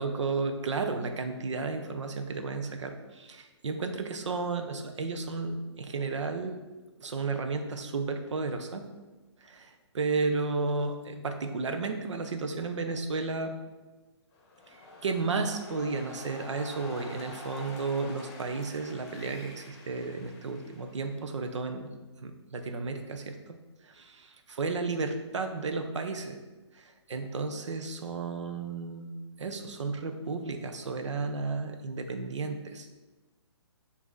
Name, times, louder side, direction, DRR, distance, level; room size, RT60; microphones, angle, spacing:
voice 1, 0.0-6.5 7.0-8.8 9.4-13.6 14.7-21.9 22.2-23.6 23.8-26.4 26.7-32.9, right 4 dB, 85° right, 6 dB, 0.6 m, -33 dB
sound 1, 14.3-21.2, left 2 dB, 35° left, 0.9 m, -47 dB
5.0 x 2.7 x 3.8 m, 1.2 s
hypercardioid pair, 160°, 15 cm